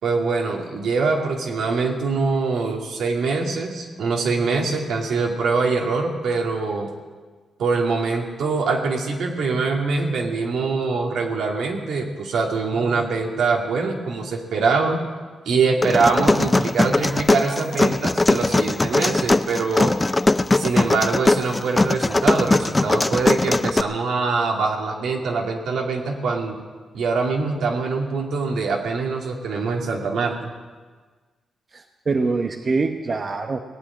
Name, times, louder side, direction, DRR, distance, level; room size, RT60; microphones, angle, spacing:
voice 1, 0.0-6.9 7.6-15.0 15.5-19.9 20.5-26.6 26.9-30.5, right 4 dB, 80° right, 1 dB, 2.3 m, -23 dB
sound 1, 15.8-23.8, left 2 dB, 20° left, 0.5 m, -20 dB
voice 2, 31.7-33.6, right 3 dB, 40° right, 5 dB, 1.0 m, -24 dB
19.0 x 8.3 x 8.8 m, 1.4 s
cardioid pair, 85°, 0 cm